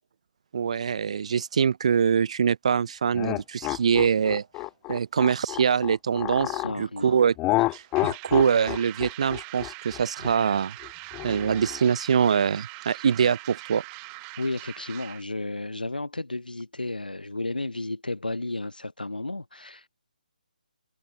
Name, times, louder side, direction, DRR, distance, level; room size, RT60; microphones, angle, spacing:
voice 1, 0.5-4.5 4.9-7.3 7.7-10.8 11.2-13.8, right 7 dB, 45° right, 0.4 m, -24 dB
sound 1, 3.1-6.8 7.4-11.9, left 20 dB, 15° left, 0.5 m, -30 dB
voice 2, 6.4-7.2 14.4-19.9, left 2 dB, 85° left, 1.4 m, -33 dB
sound 2, 7.6-15.2, right 38 dB, 20° right, 1.6 m, -42 dB
figure-of-eight pair, 145°, 5 cm